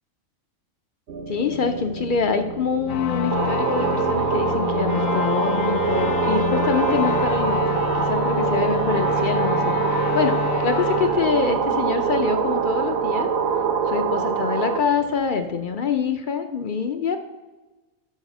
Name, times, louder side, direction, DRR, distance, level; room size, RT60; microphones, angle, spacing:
sound 1, 1.1-16.1, right 4 dB, 55° right, 0.7 m, -37 dB
voice 1, 1.3-13.3 13.9-17.2, left 5 dB, 55° left, 8 dB, 0.6 m, -25 dB
sound 2, 2.9-12.2, left 11 dB, 70° left, 1.0 m, -28 dB
sound 3, 3.3-14.8, right 7 dB, 75° right, 1.1 m, -24 dB
9.7 x 4.9 x 6.0 m, 1.2 s
omnidirectional pair, 1.4 m